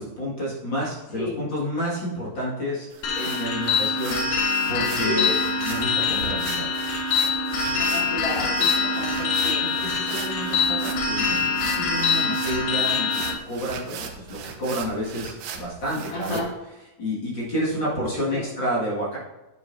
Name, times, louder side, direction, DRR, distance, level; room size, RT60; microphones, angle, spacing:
voice 1, 0.0-2.9 3.2-4.2 4.7-5.4 5.6-6.7 8.9-9.0 9.8-16.4 17.0-19.2, equal, 35° left, -6 dB, 2.4 m, -30 dB
sound 1, 2.9-16.4, right 7 dB, 85° right, 1.4 m, -38 dB
sound 2, 3.0-13.3, left 4 dB, 85° left, 3.0 m, -24 dB
voice 2, 7.7-9.7 16.1-16.5 18.3-18.4, left 1 dB, 70° left, -7 dB, 5.2 m, -31 dB
10.0 x 9.4 x 2.7 m, 1.0 s
omnidirectional pair, 4.0 m